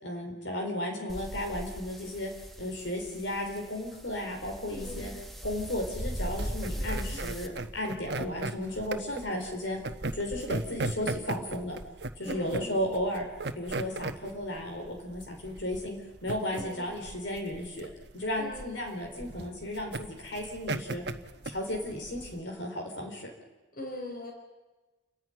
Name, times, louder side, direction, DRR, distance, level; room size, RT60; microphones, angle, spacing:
voice 1, 0.0-2.3 2.6-5.1 5.4-9.8 10.1-11.8 12.2-13.3 13.5-17.9 18.1-21.0 21.4-23.3, left 1 dB, 75° left, 1 dB, 4.5 m, -34 dB
sound 1, 1.1-7.5, equal, ahead, 1.5 m, -39 dB
voice 2, 4.7-5.2 6.7-7.2 10.3-10.8 12.2-12.9 16.5-17.0 18.4-18.8 23.7-24.3, left 1 dB, 50° left, 1 dB, 4.6 m, -42 dB
sound 2, 6.3-22.4, right 2 dB, 60° right, 1.1 m, -37 dB
29.5 x 11.0 x 9.5 m, 1.2 s
head